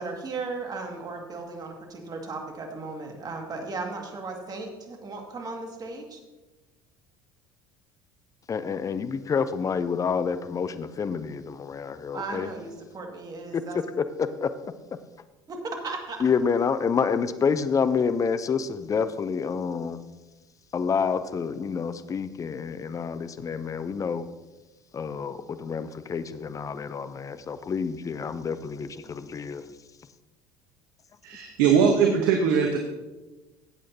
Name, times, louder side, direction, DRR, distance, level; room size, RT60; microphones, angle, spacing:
voice 1, 0.0-6.2 12.1-13.8 15.5-15.6 15.8-16.2, right 3 dB, 35° right, 2 dB, 2.1 m, -36 dB
voice 2, 8.5-12.5 13.5-13.6 14.2-14.5 16.2-20.0 20.7-24.2 24.9-29.6, left 6 dB, 30° left, 13 dB, 0.7 m, -28 dB
voice 3, 31.2-32.8, right 6 dB, 70° right, 3 dB, 1.1 m, -21 dB
15.0 x 8.7 x 2.8 m, 1.1 s
hypercardioid pair, 65°, 11 cm